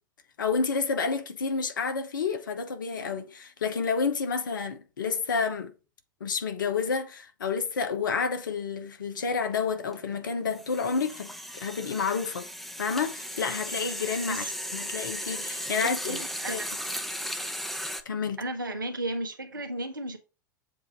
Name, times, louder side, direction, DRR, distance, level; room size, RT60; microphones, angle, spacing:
voice 1, 0.4-5.7 6.2-12.5 12.8-14.4 14.7-16.2 16.5-16.6 18.0-18.4, left 5 dB, 75° left, 1.1 m, -29 dB
sound 1, 9.2-9.4 9.7-18.0, equal, ahead, 0.8 m, -36 dB
voice 2, 15.8-16.6 18.4-20.2, right 1 dB, 90° right, 1.2 m, -34 dB
7.5 x 2.8 x 5.9 m
hypercardioid pair, 90°, 11 cm